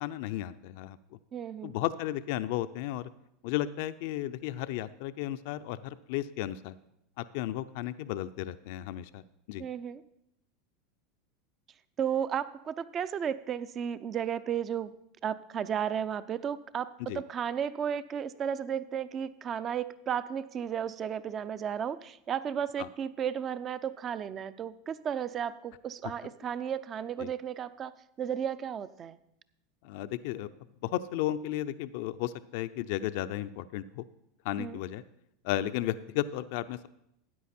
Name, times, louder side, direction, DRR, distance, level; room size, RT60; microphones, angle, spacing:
voice 1, 0.0-1.0 1.6-3.1 3.4-6.8 7.2-9.2 9.5-9.6 17.0-17.2 22.8-22.9 27.2-27.3 29.8-30.5 30.8-34.0 34.4-35.0 35.4-36.9, left 13 dB, 65° left, 12 dB, 0.5 m, -34 dB
voice 2, 1.3-1.7 9.6-10.0 12.0-14.9 15.2-29.2 34.6-34.8, right 8 dB, 35° right, 15 dB, 0.6 m, -34 dB
13.0 x 9.5 x 4.3 m, 0.80 s
hypercardioid pair, 100°, 0 cm